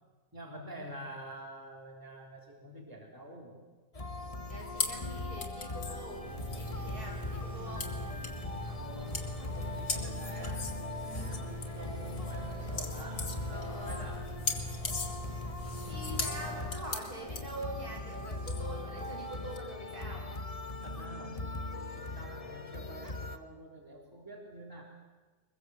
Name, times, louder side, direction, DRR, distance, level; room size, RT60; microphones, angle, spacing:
voice 1, 0.3-3.6 8.8-13.3 13.7-14.3 18.6-19.2 20.8-24.8, right 1 dB, 10° right, -1 dB, 3.6 m, -47 dB
sound 1, 3.9-23.4, left 2 dB, 25° left, 1.2 m, -40 dB
voice 2, 4.5-7.9 9.5-9.8 11.0-11.4 13.5-14.1 15.9-20.3, right 1 dB, 65° right, 0 dB, 6.7 m, -44 dB
sound 2, 4.7-19.6, left 4 dB, 70° left, 2.9 m, -40 dB
sound 3, 6.2-16.7, equal, 25° right, 6.0 m, -43 dB
23.0 x 22.5 x 7.9 m, 1.3 s
omnidirectional pair, 1.7 m